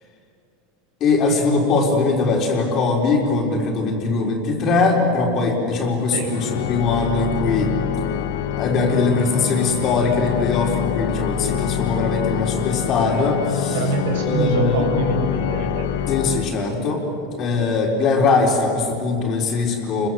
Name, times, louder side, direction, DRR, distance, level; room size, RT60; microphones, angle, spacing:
voice 1, 1.0-7.7 8.6-13.7 14.3-14.9 16.1-17.0 17.3-20.1, left 3 dB, 30° left, 1 dB, 4.2 m, -21 dB
Organ, 6.3-17.1, left 11 dB, 80° left, 1.3 m, -25 dB
voice 2, 13.7-16.3, right 5 dB, 80° right, 2 dB, 7.0 m, -26 dB
30.0 x 23.0 x 8.0 m, 2.7 s
supercardioid pair, 160°, 0 cm